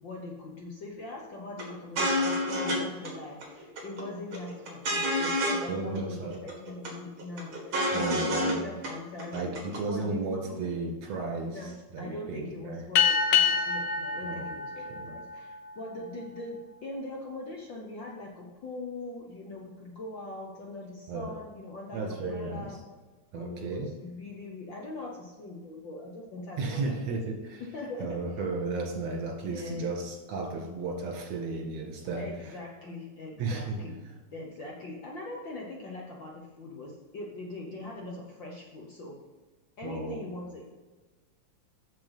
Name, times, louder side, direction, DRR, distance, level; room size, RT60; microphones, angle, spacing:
voice 1, 0.0-9.5 9.9-10.6 11.5-22.8 23.3-27.3 27.6-28.2 29.5-29.9 32.2-39.2 39.8-40.6, left 2 dB, 60° left, -1 dB, 1.3 m, -41 dB
sound 1, 1.6-1.7 2.0-2.8 3.0-3.1 3.4-4.0 4.3-5.7 5.9-6.0 6.3-6.9 7.2-8.5 8.8-8.9 9.2-9.8, equal, 45° right, 2.4 m, -28 dB
voice 2, 5.7-6.3 7.9-8.6 9.3-12.8 14.2-14.5 14.9-15.1 21.1-21.3 21.9-22.7 23.3-23.9 26.6-27.6 28.0-32.3 33.4-33.8 39.8-40.3, right 3 dB, 65° right, 1 dB, 3.1 m, -34 dB
sound 2, 12.9-15.9, left 7 dB, 90° left, 1.1 m, -27 dB
7.7 x 6.9 x 5.5 m, 1.3 s
omnidirectional pair, 3.3 m